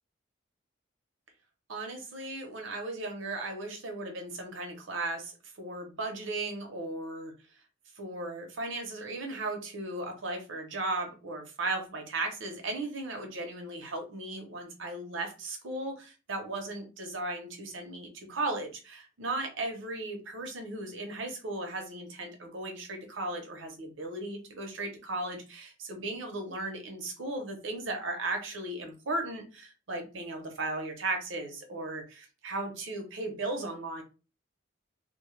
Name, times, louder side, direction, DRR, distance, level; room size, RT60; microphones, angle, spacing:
voice 1, 1.7-7.3 8.0-34.0, right 2 dB, 80° right, 4 dB, 0.6 m, -36 dB
2.2 x 2.0 x 3.0 m, 0.32 s
head